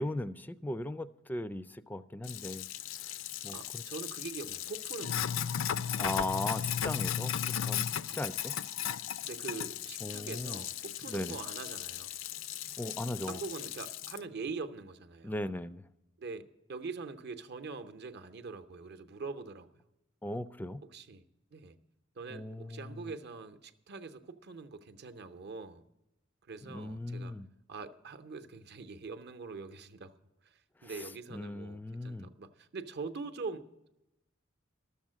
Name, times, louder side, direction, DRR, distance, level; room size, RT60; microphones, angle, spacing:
voice 1, 0.0-2.7 3.0-3.1 3.4-3.8 6.0-7.9 8.2-8.5 10.0-10.6 11.1-11.4 12.8-13.4 15.2-15.9 20.2-20.9 22.3-23.1 26.6-27.5 30.8-32.3, left 1 dB, 10° left, 0.3 m, -38 dB
Sink (filling or washing), 2.2-14.2, left 9 dB, 75° left, 0.4 m, -36 dB
voice 2, 3.5-5.3 8.1-8.2 9.3-12.1 13.3-15.3 16.2-19.7 20.9-21.2 21.5-21.8 22.2-25.8 26.5-27.3 27.7-30.1 30.8-33.7, right 4 dB, 55° right, 0.7 m, -43 dB
12.5 x 7.2 x 7.5 m
head